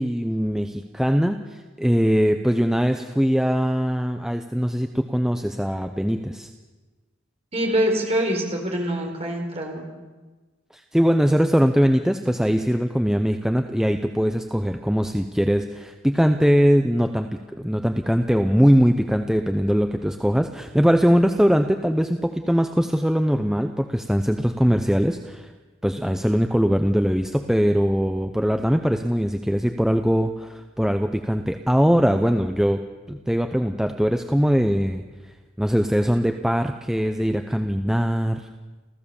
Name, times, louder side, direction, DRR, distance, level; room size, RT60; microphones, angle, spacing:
voice 1, 0.0-6.5 10.7-17.3 17.6-25.5 25.8-32.8 33.1-35.0 35.6-38.5, equal, 5° right, 6 dB, 0.7 m, -21 dB
voice 2, 7.5-9.8, right 1 dB, 35° right, 2 dB, 4.5 m, -24 dB
27.5 x 15.0 x 7.1 m, 1.3 s
head